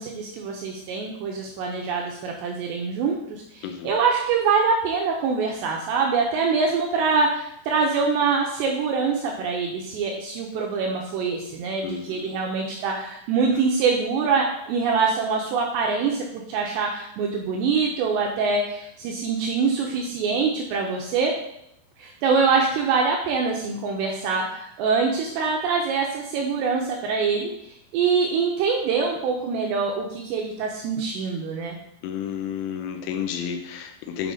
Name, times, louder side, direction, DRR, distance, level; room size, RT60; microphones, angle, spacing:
voice 1, 0.0-21.3 22.0-27.5 27.9-31.7, right 5 dB, 90° right, 0 dB, 2.5 m, -24 dB
voice 2, 3.6-3.9 11.8-12.4 32.0-34.3, left 8 dB, 90° left, 6 dB, 3.4 m, -31 dB
7.8 x 5.1 x 3.8 m, 0.79 s
omnidirectional pair, 5.7 m